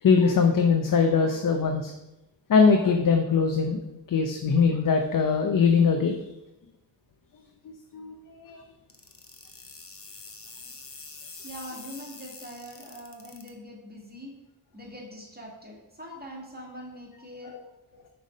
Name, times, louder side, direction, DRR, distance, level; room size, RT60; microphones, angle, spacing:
voice 1, 0.0-1.9 2.5-3.8 4.1-6.2 7.9-8.1 8.4-8.6, left 5 dB, 55° left, 4 dB, 0.6 m, -21 dB
sound 1, 8.9-13.5, left 3 dB, 35° left, 1.0 m, -45 dB
voice 2, 11.4-14.3 14.7-18.0, equal, 25° right, -2 dB, 1.9 m, -43 dB
6.3 x 3.5 x 5.1 m, 0.95 s
cardioid pair, 60°, 40 cm